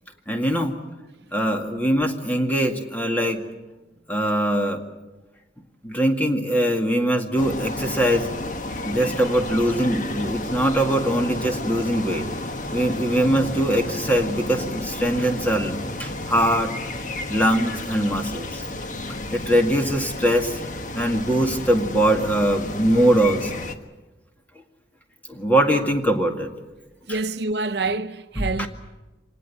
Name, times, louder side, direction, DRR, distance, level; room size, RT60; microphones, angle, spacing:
voice 1, 0.3-0.8 1.3-3.4 4.1-4.8 5.8-8.4 8.8-12.2 12.7-16.7 17.3-18.6 19.3-20.6 20.9-23.7 25.3-26.5 28.4-28.7, right 1 dB, 10° left, 2.1 m, -22 dB
sound 1, 7.4-23.7, left 2 dB, 45° left, 1.4 m, -32 dB
voice 2, 27.1-28.7, right 3 dB, 65° right, 0.8 m, -26 dB
25.5 x 19.5 x 8.5 m
head